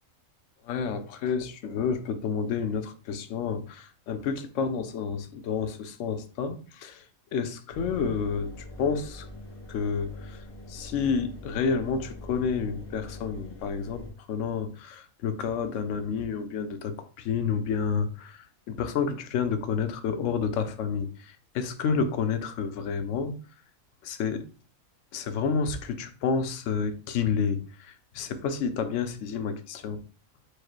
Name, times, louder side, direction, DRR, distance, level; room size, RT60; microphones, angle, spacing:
voice 1, 0.7-6.9 7.3-8.5 8.8-9.2 9.7-10.1 10.7-14.0 14.3-16.9 17.2-18.1 18.7-21.1 21.5-23.3 24.0-24.4 25.1-27.6 28.2-30.0, left 6 dB, 70° left, 0.9 m, -29 dB
Engine, 7.7-14.1, left 1 dB, 90° left, 1.5 m, -43 dB
4.7 x 2.1 x 4.5 m
omnidirectional pair, 1.4 m